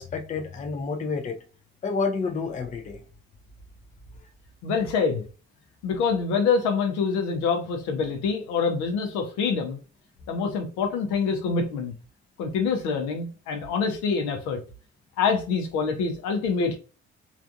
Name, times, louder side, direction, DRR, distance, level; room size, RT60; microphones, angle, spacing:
voice 1, 0.0-1.4 1.8-3.0, left 4 dB, 25° left, 0.6 m, -29 dB
voice 2, 4.6-5.2 5.8-9.8 10.3-11.9 12.4-14.6 15.2-16.8, left 5 dB, 60° left, 0.8 m, -25 dB
3.3 x 2.5 x 2.5 m
figure-of-eight pair, 45°, 32 cm